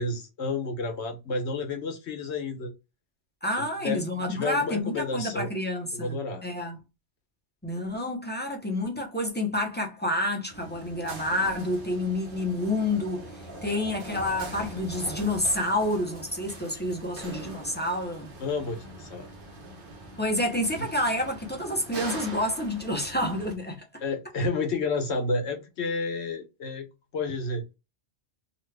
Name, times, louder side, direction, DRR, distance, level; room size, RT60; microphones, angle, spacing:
voice 1, 0.0-2.7 3.8-5.6 5.9-6.4 18.4-19.3 24.0-26.9 27.1-27.6, left 3 dB, 70° left, 1.1 m, -30 dB
voice 2, 3.4-6.2 6.4-6.8 7.6-18.3 20.2-23.8, left 1 dB, 10° left, 0.5 m, -29 dB
sound 1, 10.5-23.6, right 2 dB, 55° right, 0.8 m, -42 dB
2.9 x 2.3 x 3.2 m
omnidirectional pair, 1.2 m